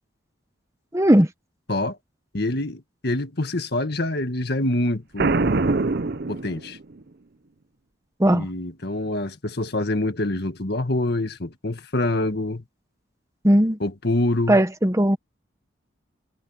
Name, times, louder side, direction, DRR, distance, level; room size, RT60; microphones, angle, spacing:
voice 1, 0.9-1.3 8.2-8.5 13.4-13.8 14.5-15.2, right 1 dB, 15° right, 1.0 m, -17 dB
voice 2, 2.3-5.4 6.3-6.8 8.3-12.6 13.8-14.6, left 1 dB, 55° left, 1.9 m, -26 dB
Boom, 5.2-7.0, right 3 dB, 55° right, 0.7 m, -23 dB
head